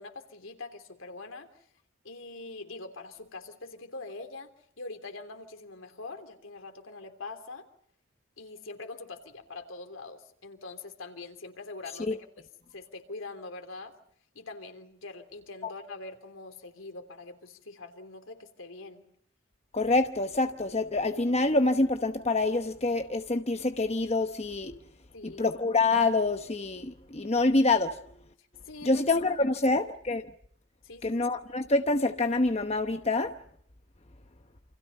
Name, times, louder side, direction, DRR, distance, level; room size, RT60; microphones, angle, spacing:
voice 1, 0.0-1.5 2.0-4.5 4.8-7.7 8.4-12.2 12.7-13.9 14.3-19.0 25.1-25.6 28.7-29.0 29.5-29.8 30.8-31.3, left 3 dB, 90° left, 3.2 m, -43 dB
voice 2, 19.7-24.8 25.2-28.0 28.8-30.2 31.0-33.3, left 2 dB, 30° left, 1.0 m, -26 dB
28.5 x 25.5 x 5.4 m
head